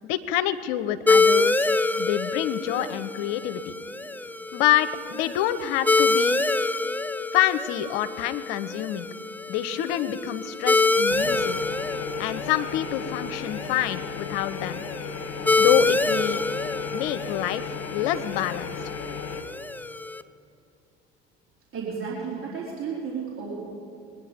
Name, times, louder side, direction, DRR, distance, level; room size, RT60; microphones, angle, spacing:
voice 1, 0.1-1.6 2.0-3.7 4.5-6.4 7.3-9.1 9.5-11.6 12.2-14.8 15.6-16.4 16.9-18.7, left 11 dB, 75° left, 13 dB, 0.8 m, -27 dB
sound 1, 1.1-20.2, left 3 dB, 5° left, 0.5 m, -26 dB
sound 2, 11.1-19.4, left 6 dB, 50° left, 1.6 m, -36 dB
voice 2, 21.7-23.6, right 5 dB, 45° right, -5 dB, 3.6 m, -33 dB
22.5 x 10.0 x 5.1 m, 2.6 s
hypercardioid pair, 70°, 30 cm